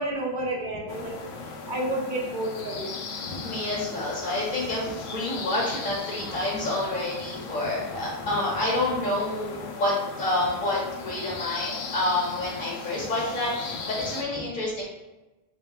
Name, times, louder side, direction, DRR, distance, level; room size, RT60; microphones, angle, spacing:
voice 1, 0.0-1.2 1.7-2.9 3.7-3.8, right 1 dB, 55° right, 0 dB, 0.7 m, -30 dB
sound 1, 0.9-14.2, left 4 dB, 80° left, 0.9 m, -38 dB
voice 2, 3.1-14.8, left 2 dB, 50° left, -5 dB, 1.4 m, -28 dB
5.0 x 3.4 x 2.4 m, 1.1 s
omnidirectional pair, 1.1 m